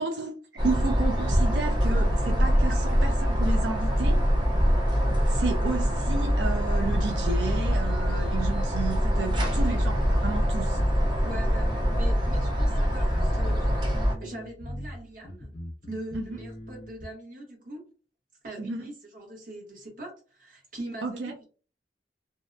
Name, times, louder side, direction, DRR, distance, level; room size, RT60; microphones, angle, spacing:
voice 1, 0.0-4.2 5.3-10.8 16.1-16.3 18.6-18.8 21.0-21.3, right 3 dB, 90° right, 0.4 m, -32 dB
sound 1, 0.6-14.2, equal, 25° right, 0.6 m, -24 dB
sound 2, 7.4-17.0, equal, 45° left, 0.7 m, -40 dB
voice 2, 11.2-13.9 14.2-15.6 15.9-17.9 18.4-21.5, right 1 dB, 50° right, 1.0 m, -41 dB
2.5 x 2.1 x 2.5 m
head